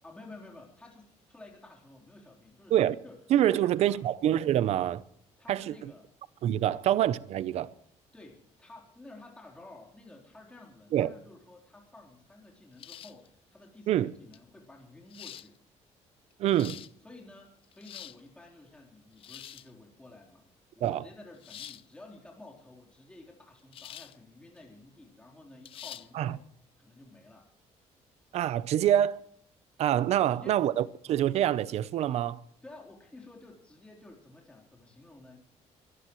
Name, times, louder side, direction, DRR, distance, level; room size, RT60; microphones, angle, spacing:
voice 1, 0.0-2.8 3.0-3.2 3.4-4.0 5.4-6.1 6.6-6.8 8.1-15.6 17.0-20.5 20.8-26.4 26.8-27.5 30.2-30.8 32.6-35.4, left 2 dB, 10° left, 3.8 m, -52 dB
voice 2, 3.3-5.0 5.5-5.9 6.4-7.7 10.9-11.1 13.9-14.1 16.4-16.8 20.8-21.0 26.1-26.3 28.3-29.2 29.8-32.4, right 11 dB, 60° right, 0.7 m, -26 dB
sound 1, 12.8-13.3 14.3-14.4 15.1-15.5 16.3-16.9 17.6-18.2 19.2-19.7 21.4-21.8 23.7-24.2 24.6-24.7 25.6-26.1, left 10 dB, 45° left, 0.6 m, -45 dB
23.5 x 18.0 x 3.1 m
cardioid pair, 165°, 12 cm